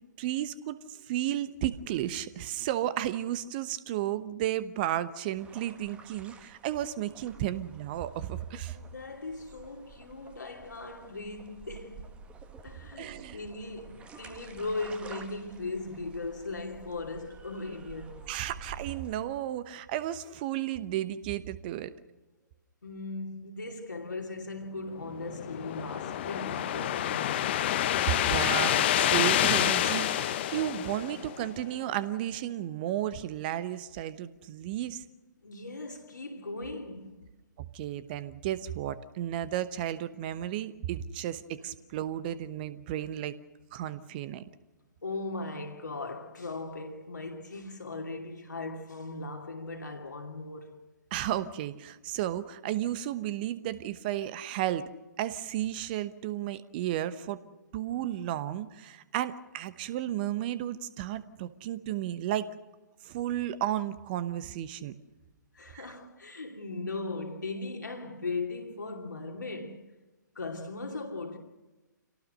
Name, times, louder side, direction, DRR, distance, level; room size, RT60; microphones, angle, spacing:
voice 1, 0.2-8.8 13.0-13.4 18.3-21.9 28.1-35.0 37.6-43.3 43.7-44.4 51.1-54.9 55.2-57.4 57.7-62.5 63.0-64.9 65.7-65.9, right 12 dB, 30° right, 1.0 m, -33 dB
sound 1, 5.4-19.2, right 5 dB, 10° right, 1.6 m, -50 dB
voice 2, 8.7-12.1 12.6-18.2 22.8-27.8 31.0-31.3 35.4-37.2 41.6-41.7 43.0-43.1 45.0-50.8 65.5-69.9 70.3-71.4, left 3 dB, 70° left, 2.7 m, -38 dB
sound 2, 25.0-31.5, left 12 dB, 35° left, 1.0 m, -28 dB
27.0 x 18.0 x 6.6 m
figure-of-eight pair, 125°, 10 cm